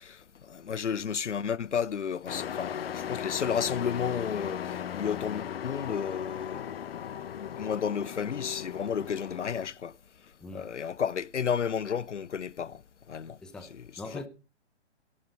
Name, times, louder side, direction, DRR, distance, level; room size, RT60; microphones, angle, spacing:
voice 1, 0.0-9.9 10.5-12.8 13.1-13.4 14.1-14.2, left 7 dB, 90° left, 0.6 m, -32 dB
Truck, 2.3-9.7, left 9 dB, 55° left, 0.9 m, -37 dB
voice 2, 13.4-14.3, left 2 dB, ahead, 0.5 m, -42 dB
11.5 x 8.6 x 6.7 m
figure-of-eight pair, 130°, 35 cm